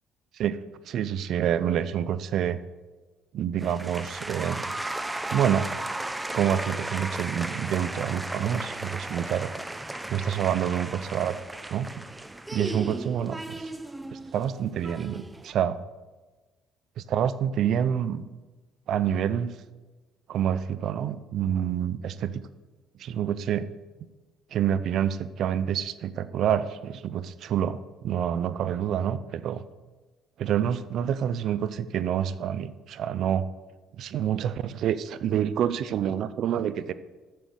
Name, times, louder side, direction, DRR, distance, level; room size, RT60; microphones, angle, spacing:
voice 1, 0.4-2.6 3.3-4.7 5.3-5.7 6.3-9.5 10.1-11.4 11.7-11.9 12.5-13.7 14.1-15.8 17.0-18.2 18.9-19.5 20.3-22.4 23.0-23.7 24.5-29.6 30.4-33.5 34.0-36.9, right 9 dB, 65° right, 15 dB, 0.5 m, -27 dB
sound 1, 3.6-15.5, right 2 dB, 15° right, 0.6 m, -35 dB
7.5 x 6.9 x 6.4 m, 1.2 s
supercardioid pair, 70°, 0 cm